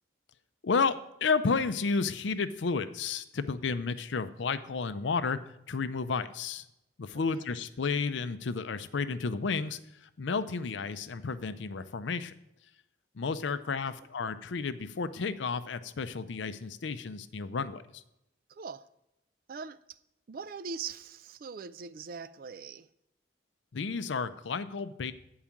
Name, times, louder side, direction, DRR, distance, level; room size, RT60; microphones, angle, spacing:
voice 1, 0.6-5.4 5.7-6.7 7.0-12.3 13.1-18.0 23.7-25.1, left 4 dB, 75° left, 0.5 m, -32 dB
voice 2, 18.5-18.9 19.5-20.0 20.3-22.9, right 5 dB, 50° right, 0.3 m, -41 dB
8.8 x 4.8 x 7.1 m
head